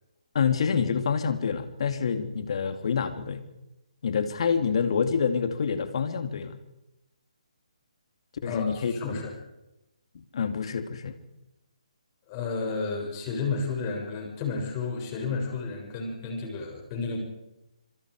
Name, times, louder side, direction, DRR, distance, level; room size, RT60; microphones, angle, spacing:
voice 1, 0.3-3.4 4.0-6.6 8.4-9.2 10.3-11.2, left 6 dB, 55° left, 8 dB, 2.8 m, -27 dB
voice 2, 8.4-9.3 12.3-17.2, left 4 dB, 30° left, 2 dB, 7.1 m, -32 dB
26.5 x 26.5 x 5.0 m, 0.93 s
figure-of-eight pair, 145°, 4 cm